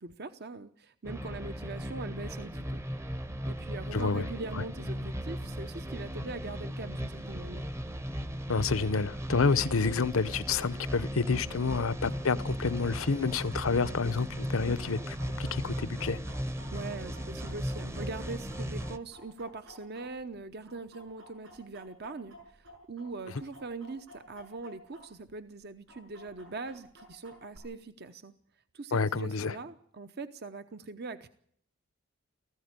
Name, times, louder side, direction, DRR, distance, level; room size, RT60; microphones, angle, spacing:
voice 1, 0.0-2.8 3.5-7.7 16.7-28.3 28.7-31.3, right 3 dB, 50° right, 0.9 m, -42 dB
sound 1, 1.0-19.0, equal, 15° right, 0.8 m, -37 dB
voice 2, 3.9-4.2 8.5-16.2 28.9-29.5, left 4 dB, 75° left, 0.8 m, -29 dB
Chicken rooster, 12.1-20.4 20.7-25.0 25.3-25.4 25.9-27.6, equal, 65° right, 7.2 m, -52 dB
17.5 x 15.0 x 9.7 m
head